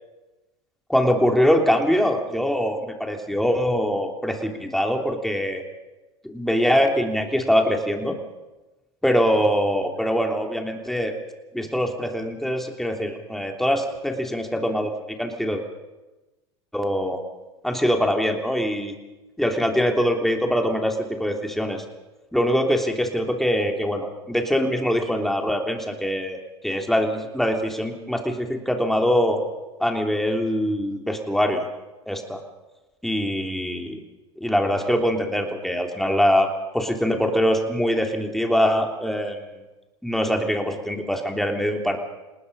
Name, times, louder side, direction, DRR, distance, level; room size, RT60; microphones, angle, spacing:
voice 1, 0.9-5.6 6.2-8.2 9.0-11.1 11.5-14.9 15.2-15.6 16.7-17.2 17.6-18.9 19.4-21.8 22.3-29.4 29.8-31.6 32.1-32.4 33.0-34.0 34.4-36.5 36.7-39.4 40.0-42.0, equal, ahead, 3 dB, 3.2 m, -23 dB
27.5 x 19.0 x 5.5 m, 1.1 s
hypercardioid pair, 80°, 15 cm